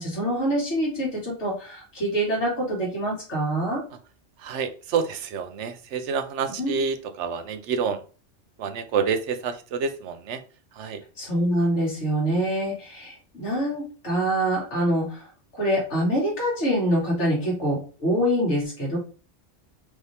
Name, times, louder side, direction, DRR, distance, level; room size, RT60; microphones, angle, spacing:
voice 1, 0.0-3.8 6.6-6.8 11.2-15.3 15.5-19.0, equal, 75° left, -4 dB, 2.1 m, -25 dB
voice 2, 4.4-8.0 8.6-10.4 10.7-11.0, right 6 dB, 80° right, 8 dB, 0.9 m, -28 dB
4.7 x 2.8 x 3.3 m, 0.37 s
omnidirectional pair, 1.2 m